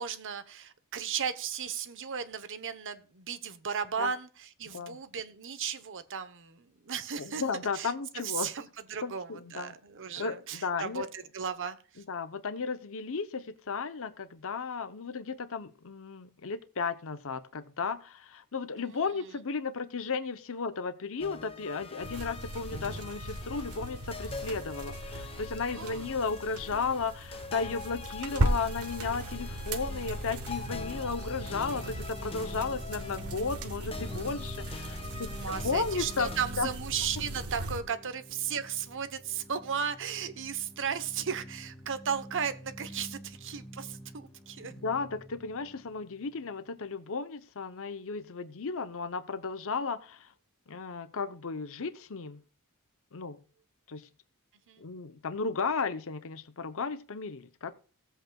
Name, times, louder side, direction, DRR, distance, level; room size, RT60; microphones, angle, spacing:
voice 1, 0.0-7.4 7.7-7.9 8.2-12.0 18.8-19.1 25.7-26.1 35.3-44.7 54.7-54.9, right 7 dB, 60° right, 0.9 m, -35 dB
voice 2, 7.2-8.5 9.0-9.7 10.2-11.1 12.1-36.3 36.6-36.7 44.8-50.3 50.7-52.4 53.1-53.4 53.9-54.1 54.8-57.7, left 4 dB, 65° left, 0.8 m, -34 dB
sound 1, 21.2-36.5, left 4 dB, 25° left, 0.9 m, -44 dB
sound 2, 22.0-37.8, right 1 dB, 80° right, 1.4 m, -37 dB
sound 3, 29.2-46.8, equal, ahead, 1.8 m, -48 dB
17.5 x 8.0 x 2.3 m
head